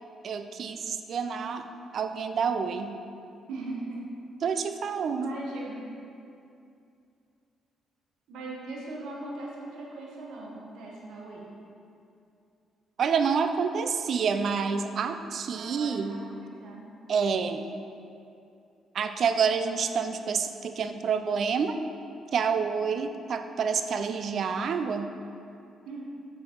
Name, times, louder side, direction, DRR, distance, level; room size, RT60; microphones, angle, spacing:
voice 1, 0.2-1.7 1.9-2.9 4.4-5.3 13.0-16.2 17.1-17.7 18.9-21.8 22.3-25.1, right 6 dB, 60° right, 8 dB, 0.4 m, -28 dB
voice 2, 3.5-4.1 5.1-5.9 8.3-11.5 15.6-16.9 25.8-26.0, right 2 dB, 80° right, -3 dB, 1.1 m, -39 dB
7.4 x 4.5 x 4.5 m, 2.5 s
cardioid pair, 90°, 0 cm